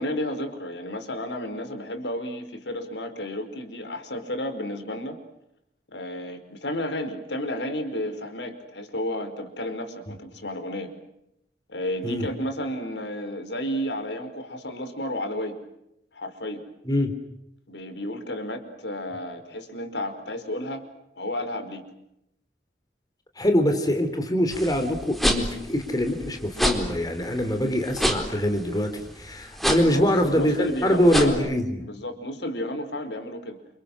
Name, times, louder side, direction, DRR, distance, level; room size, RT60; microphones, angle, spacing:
voice 1, 0.0-5.2 5.9-10.9 11.7-15.6 16.1-16.6 17.7-20.8 21.1-21.8 29.8-31.5 31.8-33.6, left 1 dB, 80° left, 8 dB, 4.9 m, -32 dB
voice 2, 23.4-30.6 30.8-31.8, equal, 20° left, 6 dB, 3.7 m, -24 dB
sound 1, 24.5-31.3, equal, ahead, 4.2 m, -28 dB
29.5 x 29.0 x 6.4 m, 0.81 s
head